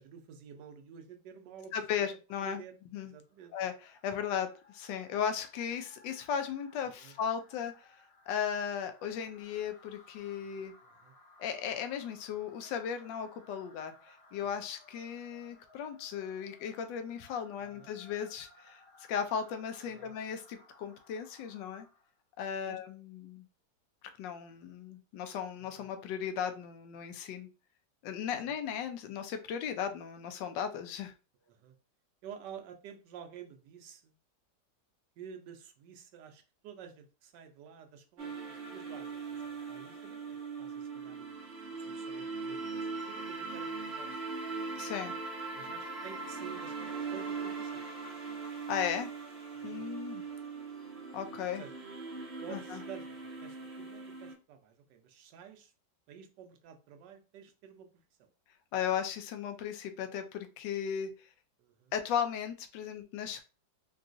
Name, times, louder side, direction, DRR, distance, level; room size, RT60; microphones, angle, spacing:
voice 1, 0.0-1.7 2.0-3.5 6.8-7.1 10.4-11.1 14.4-14.5 17.5-17.9 19.9-20.1 22.6-22.8 25.6-25.9 28.3-28.4 31.4-31.7 32.2-34.1 35.2-41.4 41.8-44.4 45.5-47.8 49.5-49.9 51.6-51.7 52.4-55.7 56.1-57.9 58.2-58.3 61.6-61.9, right 8 dB, 75° right, 6 dB, 1.2 m, -51 dB
voice 2, 1.7-2.6 2.9-3.1 3.5-7.9 8.3-10.7 11.4-18.8 19.1-21.9 22.4-23.4 24.2-27.5 28.0-31.1 44.8-45.2 48.7-49.1 49.6-50.2 51.1-51.6 52.5-52.8 58.7-61.3 61.9-63.4, left 8 dB, 85° left, 8 dB, 1.3 m, -36 dB
sound 1, 3.3-22.2, left 2 dB, 45° left, 1.0 m, -61 dB
sound 2, 38.2-54.3, right 4 dB, 55° right, 0.8 m, -40 dB
3.8 x 2.3 x 2.5 m, 0.32 s
omnidirectional pair, 1.9 m